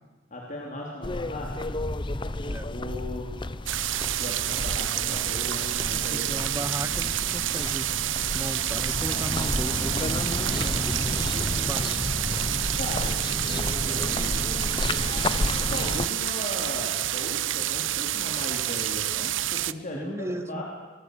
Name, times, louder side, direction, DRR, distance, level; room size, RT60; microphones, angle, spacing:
voice 1, 0.3-1.7 2.6-3.3 4.2-6.3 12.7-14.4 15.7-20.6, left 1 dB, 40° left, -2 dB, 3.8 m, -37 dB
sound 1, 1.0-16.1, left 2 dB, 25° left, 0.7 m, -31 dB
sound 2, 3.7-19.7, right 13 dB, 80° right, 0.7 m, -28 dB
voice 2, 5.9-7.9 8.3-11.1 11.5-12.0 19.9-20.6, right 1 dB, 15° right, 11 dB, 1.1 m, -36 dB
24.5 x 22.0 x 8.3 m, 1.3 s
head